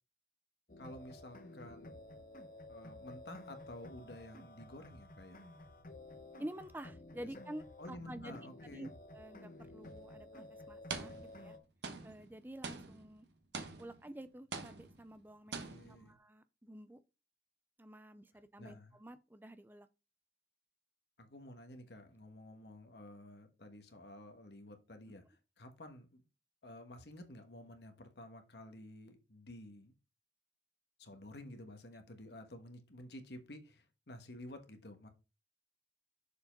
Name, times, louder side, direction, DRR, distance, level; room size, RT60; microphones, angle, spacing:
sound 1, 0.7-11.6, left 2 dB, 50° left, 1.0 m, -53 dB
voice 1, 0.8-2.0 2.7-5.4 7.3-7.4 7.8-8.9 15.6-16.1 18.6-19.0 21.2-26.2 26.6-29.9 31.0-35.1, left 1 dB, 70° left, 1.3 m, -52 dB
voice 2, 6.4-8.4 8.7-11.6 12.0-13.3 13.8-15.5 15.9-17.0 17.8-19.9, right 1 dB, 10° right, 0.5 m, -49 dB
sound 2, 9.8-10.0 10.9-11.5 11.8-14.2 14.5-15.2 15.5-16.1, right 4 dB, 80° right, 1.2 m, -45 dB
6.8 x 4.7 x 5.2 m
head